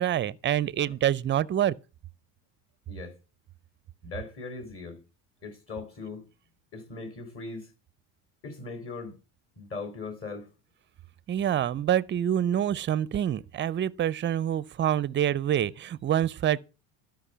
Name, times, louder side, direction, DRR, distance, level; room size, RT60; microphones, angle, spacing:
voice 1, 0.0-1.8 11.3-16.6, right 10 dB, 30° right, 0.5 m, -26 dB
voice 2, 4.0-5.0 5.4-6.2 6.7-7.7 8.4-9.2 9.6-10.5, left 3 dB, 35° left, 4.0 m, -39 dB
12.5 x 5.2 x 6.8 m
supercardioid pair, 105°, 39 cm